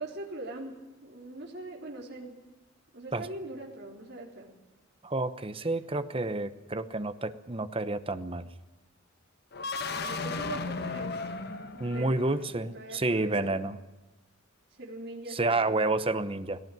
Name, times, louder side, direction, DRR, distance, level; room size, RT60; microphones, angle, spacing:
voice 1, 0.0-2.4 2.9-4.6 5.6-5.7 10.0-11.3 11.7-12.5 12.7-13.6 14.7-16.1, right 2 dB, 55° right, -1 dB, 3.8 m, -42 dB
voice 2, 5.0-8.5 11.8-13.8 15.3-16.6, right 2 dB, 25° right, 12 dB, 0.9 m, -29 dB
sound 1, 9.5-12.5, left 4 dB, 55° left, 1.2 m, -35 dB
18.5 x 17.5 x 9.2 m, 1.1 s
head